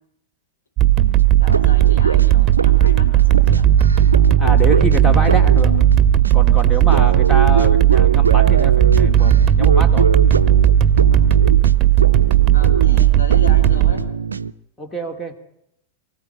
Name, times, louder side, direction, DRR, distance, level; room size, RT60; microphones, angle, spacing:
sound 1, 0.8-13.9, right 11 dB, 25° right, 1.9 m, -14 dB
sound 2, 1.0-14.5, right 4 dB, 75° right, 0.7 m, -24 dB
voice 1, 1.4-3.7 6.8-7.3 11.0-11.3 12.5-14.1, left 3 dB, 70° left, 2 dB, 5.6 m, -34 dB
voice 2, 4.4-5.8 6.3-10.1 14.8-15.3, right 1 dB, 10° left, 6 dB, 2.6 m, -26 dB
24.5 x 15.0 x 9.2 m, 0.79 s
figure-of-eight pair, 90°, 0 cm